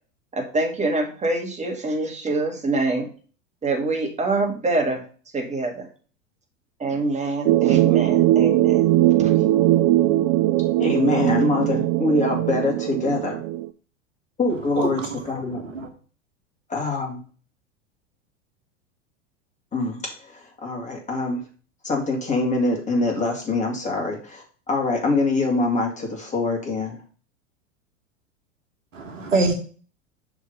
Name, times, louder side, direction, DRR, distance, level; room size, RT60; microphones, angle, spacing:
voice 1, 0.3-3.1 3.6-5.0 5.3-5.9 6.8-8.9 9.2-9.4, right 2 dB, 20° right, 2 dB, 1.8 m, -25 dB
sound 1, 7.5-13.7, right 15 dB, 45° right, 0.5 m, -20 dB
voice 2, 10.8-13.4 14.4-15.6 16.7-17.2 19.7-21.4 21.8-27.0, left 3 dB, 20° left, 0 dB, 2.3 m, -24 dB
voice 3, 14.7-15.9 28.9-29.5, right 3 dB, 80° right, 4 dB, 1.4 m, -25 dB
6.1 x 3.7 x 5.4 m, 0.39 s
hypercardioid pair, 90°, 38 cm